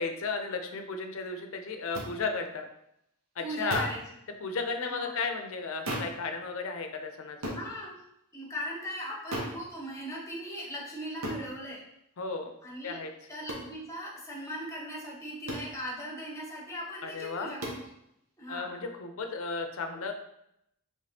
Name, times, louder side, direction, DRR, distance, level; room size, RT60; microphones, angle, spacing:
voice 1, 0.0-2.7 3.4-3.9 4.4-7.6 12.2-12.5 12.8-13.1 17.0-17.5 18.5-20.1, left 4 dB, 65° left, 5 dB, 0.6 m, -34 dB
sound 1, 1.9-2.1 3.7-4.0 5.9-6.2 7.4-7.7 9.3-9.6 11.2-11.5 13.5-13.7 15.5-15.7 17.6-17.9, right 1 dB, 70° right, 0.9 m, -35 dB
voice 2, 3.4-4.0 4.8-5.2 7.5-7.9 8.3-11.8 12.6-13.0 13.3-17.6 18.4-18.7, equal, 15° left, -4 dB, 1.1 m, -39 dB
5.1 x 3.2 x 2.8 m, 0.79 s
head